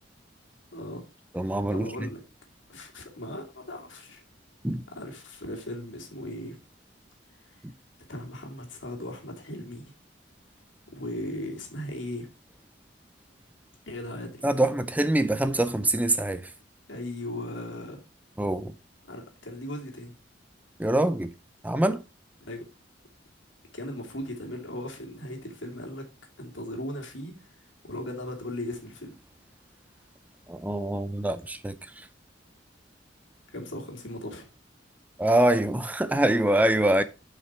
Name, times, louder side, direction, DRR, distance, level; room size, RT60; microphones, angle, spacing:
voice 1, 0.7-1.0 1.7-2.2 2.7-4.2 5.0-6.6 7.4-7.6 8.1-9.9 10.9-12.3 13.9-14.4 16.9-18.0 19.1-20.1 22.4-22.7 23.7-26.0 26.4-27.5 27.8-29.2 33.5-34.5, left 1 dB, 90° left, 2.6 m, -37 dB
voice 2, 1.3-2.1 4.6-4.8 7.6-7.7 14.4-16.5 18.4-18.7 20.8-21.3 21.6-22.0 30.5-32.1 35.2-37.0, right 1 dB, 10° right, 0.5 m, -25 dB
7.6 x 5.7 x 4.7 m
head